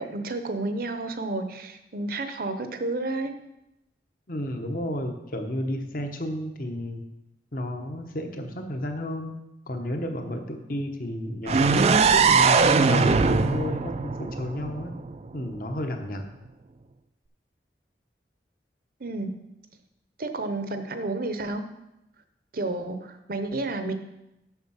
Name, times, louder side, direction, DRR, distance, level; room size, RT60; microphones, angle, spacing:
voice 1, 0.0-3.3 11.5-11.6 19.0-19.3 20.2-21.6 22.5-23.9, right 2 dB, 55° right, 8 dB, 0.8 m, -31 dB
voice 2, 4.3-7.0 7.5-9.3 9.7-14.9 15.3-16.3, left 1 dB, 50° left, 5 dB, 1.0 m, -32 dB
sound 1, 11.5-15.3, right 4 dB, 35° right, 0.4 m, -21 dB
7.1 x 6.7 x 5.6 m, 0.91 s
head